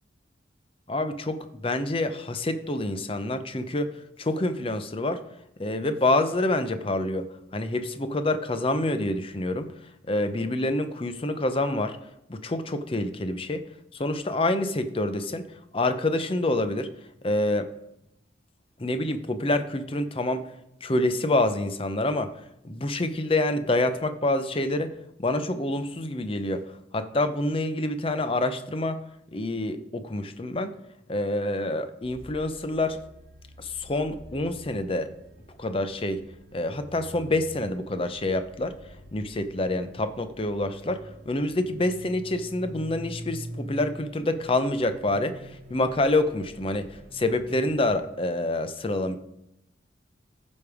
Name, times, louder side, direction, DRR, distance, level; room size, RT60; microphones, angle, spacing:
voice 1, 0.9-3.9 4.2-5.2 5.6-9.7 10.1-12.0 12.3-13.7 13.9-15.5 15.7-16.9 17.2-17.7 18.8-20.5 20.8-22.3 22.6-24.9 25.2-29.0 29.3-30.7 31.1-33.0 33.6-35.1 35.6-36.2 36.5-38.8 39.1-49.2, left 2 dB, 30° left, 10 dB, 0.6 m, -27 dB
sound 1, 32.0-48.0, equal, 50° right, 1.3 m, -45 dB
14.5 x 5.3 x 4.9 m, 0.83 s
head